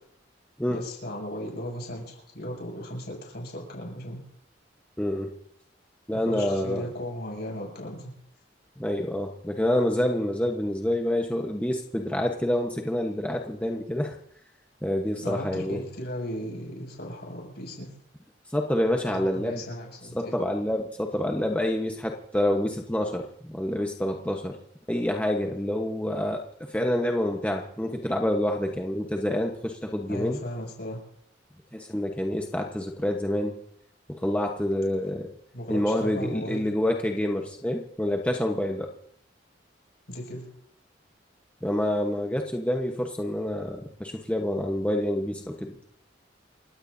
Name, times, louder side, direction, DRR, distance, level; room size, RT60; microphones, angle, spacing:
voice 1, 0.7-4.2 6.3-8.2 15.1-17.9 19.1-20.4 30.1-31.0 35.5-36.6 40.1-40.5, equal, 60° left, 0 dB, 7.1 m, -36 dB
voice 2, 5.0-5.3 6.1-6.8 8.8-14.2 14.8-15.8 18.5-19.6 20.1-24.6 24.9-30.4 31.7-33.6 34.1-35.3 35.7-38.9 41.6-45.7, left 1 dB, 5° left, 1 dB, 1.0 m, -27 dB
29.0 x 15.5 x 2.7 m, 0.71 s
head